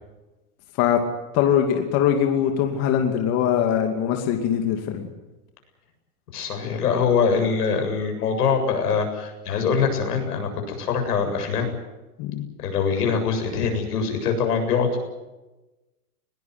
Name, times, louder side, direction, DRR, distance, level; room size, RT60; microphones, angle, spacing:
voice 1, 1.3-5.1 12.2-12.5, left 9 dB, 30° left, 4 dB, 2.6 m, -22 dB
voice 2, 6.3-11.8 12.6-15.0, left 6 dB, 85° left, 5 dB, 7.7 m, -23 dB
21.0 x 20.0 x 9.7 m, 1.1 s
supercardioid pair, 160°, 46 cm